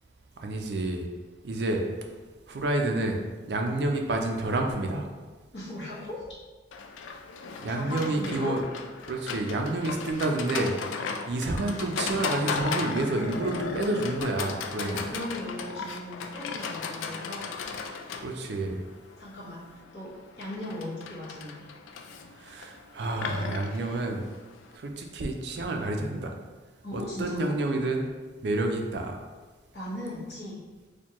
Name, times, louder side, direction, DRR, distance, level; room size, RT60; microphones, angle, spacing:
voice 1, 0.4-1.1 1.4-1.8 2.5-3.2 3.4-5.1 7.6-8.7 9.1-10.8 11.3-15.1 18.2-18.8 22.4-24.2 24.7-26.3 26.9-28.1 28.4-29.2, right 2 dB, 60° right, 3 dB, 0.4 m, -29 dB
voice 2, 5.5-6.2 7.7-8.6 14.8-17.5 19.2-21.7 26.8-27.5 29.7-30.6, left 1 dB, 60° left, -7 dB, 1.1 m, -38 dB
Livestock farm animals working animals, 6.7-24.7, left 5 dB, 85° left, 0.3 m, -36 dB
4.3 x 2.2 x 2.9 m, 1.3 s
head